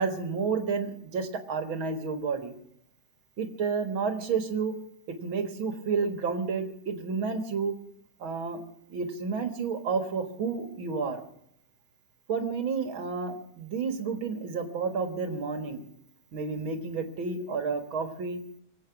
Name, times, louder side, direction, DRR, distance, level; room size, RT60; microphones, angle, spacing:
voice 1, 0.0-2.6 3.4-4.7 5.1-7.7 8.2-8.6 8.9-11.2 12.3-15.9 16.3-18.4, right 5 dB, 50° right, 7 dB, 1.8 m, -30 dB
25.0 x 8.6 x 5.9 m, 0.72 s
omnidirectional pair, 3.8 m